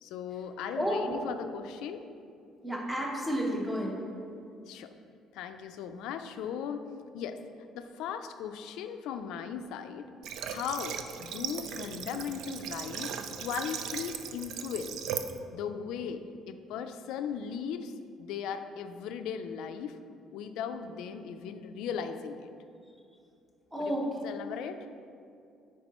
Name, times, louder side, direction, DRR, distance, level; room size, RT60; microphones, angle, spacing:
voice 1, 0.0-2.1 4.7-4.9 5.3-6.9 7.1-7.4 7.7-10.1 10.5-15.0 15.5-16.2 16.5-17.9 18.2-20.0 20.3-22.5 23.8-24.9, left 7 dB, 85° left, 8 dB, 0.4 m, -37 dB
voice 2, 0.7-1.2 2.6-4.0 23.7-24.3, equal, 10° right, -2 dB, 1.0 m, -31 dB
Water / Water tap faucet, 10.2-15.4, right 8 dB, 65° right, 0.4 m, -38 dB
9.5 x 4.7 x 3.0 m, 2.5 s
cardioid pair, 155°, 0 cm